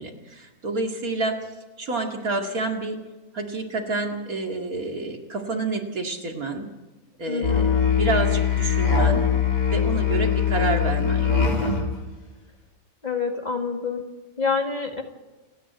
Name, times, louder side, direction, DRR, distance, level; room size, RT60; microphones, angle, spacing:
voice 1, 0.0-1.4 1.8-3.0 3.3-6.7 7.2-9.2 9.7-11.7, right 3 dB, 60° right, 2 dB, 2.7 m, -29 dB
voice 2, 7.3-7.7 13.0-14.0 14.4-15.0, left 4 dB, 25° left, 3 dB, 2.0 m, -27 dB
Musical instrument, 7.4-11.9, left 7 dB, 80° left, 4.4 m, -21 dB
29.0 x 10.0 x 9.3 m, 1.2 s
omnidirectional pair, 1.7 m